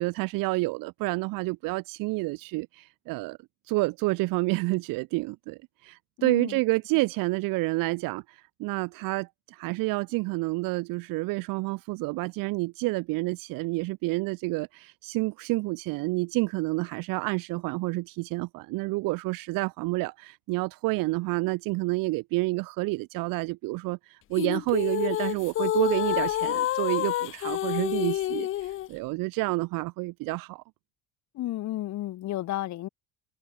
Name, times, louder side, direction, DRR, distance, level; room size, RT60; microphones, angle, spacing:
voice 1, 0.0-3.4 3.7-30.6, right 23 dB, 85° right, 1.2 m, -29 dB
voice 2, 6.2-6.6 31.3-32.9, left 14 dB, 60° left, 3.0 m, -32 dB
sound 1, 24.4-28.9, left 13 dB, 40° left, 0.6 m, -28 dB
cardioid pair, 150°, 33 cm